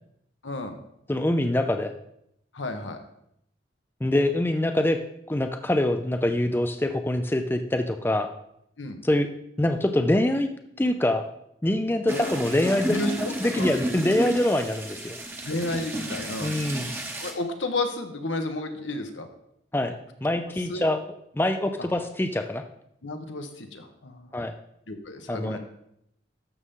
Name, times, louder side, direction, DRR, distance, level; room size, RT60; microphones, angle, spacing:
voice 1, 0.4-0.8 2.5-3.0 8.8-9.0 12.1-12.3 12.9-13.8 15.4-16.5 17.2-19.3 20.7-20.8 23.0-24.3 24.9-25.6, left 2 dB, 80° left, 6 dB, 1.2 m, -32 dB
voice 2, 1.1-1.9 4.0-5.0 5.3-8.3 9.0-9.3 9.6-10.5 10.8-11.3 11.6-13.0 13.4-15.2 16.4-16.9 19.7-19.9 20.2-21.0 21.3-22.6 24.3-24.5 25.3-25.6, left 1 dB, 10° left, 7 dB, 0.4 m, -24 dB
sound 1, 12.1-17.3, right 1 dB, 15° right, 1.0 m, -32 dB
12.5 x 6.9 x 3.7 m, 0.78 s
head